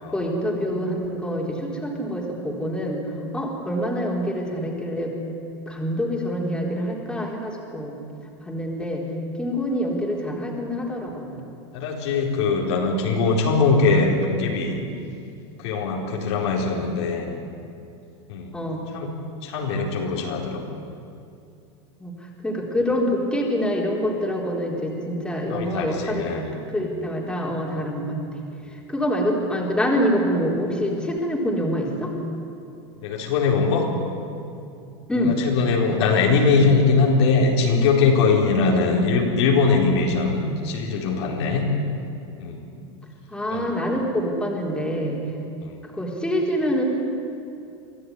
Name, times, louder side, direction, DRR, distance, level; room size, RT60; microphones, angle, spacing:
voice 1, 0.1-3.0 3.3-5.1 5.7-7.9 8.4-9.0 9.4-11.4 18.5-18.9 22.0-22.2 22.4-28.4 28.7-32.1 35.1-35.3 38.7-39.0 43.3-45.2 45.8-46.8, equal, 5° left, -2 dB, 4.0 m, -26 dB
voice 2, 11.7-14.8 15.6-17.3 18.3-18.5 18.9-19.1 19.4-20.6 25.5-26.5 33.0-33.9 35.2-41.6 42.4-42.6 43.5-43.7 45.6-45.8, left 4 dB, 75° left, 0 dB, 4.4 m, -21 dB
24.0 x 14.5 x 9.7 m, 2.6 s
supercardioid pair, 130°, 14 cm